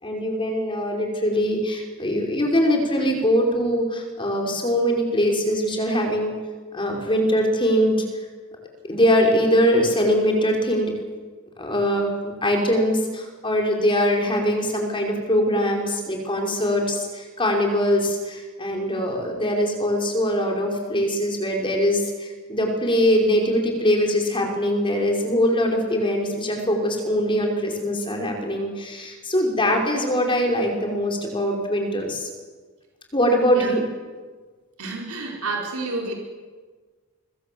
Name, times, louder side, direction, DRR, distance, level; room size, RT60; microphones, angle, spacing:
voice 1, 0.0-6.3 6.7-8.0 8.9-10.9 11.6-32.3 33.1-33.8, equal, 25° left, 1 dB, 5.4 m, -22 dB
voice 2, 34.8-36.1, right 3 dB, 80° right, -1 dB, 4.7 m, -29 dB
25.0 x 22.5 x 7.9 m, 1.5 s
head